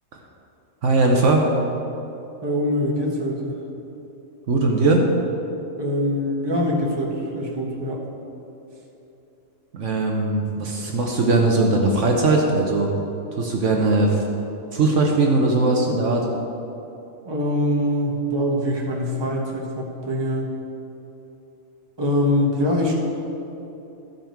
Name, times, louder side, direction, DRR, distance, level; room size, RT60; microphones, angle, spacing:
voice 1, 0.8-1.4 4.5-5.0 9.7-12.9 13.3-14.2 14.7-16.2, right 2 dB, 65° right, 0 dB, 1.2 m, -19 dB
voice 2, 2.4-3.6 5.8-8.0 17.2-20.5 22.0-22.9, left 1 dB, 20° right, -2 dB, 1.2 m, -23 dB
13.5 x 5.3 x 4.5 m, 2.9 s
omnidirectional pair, 1.4 m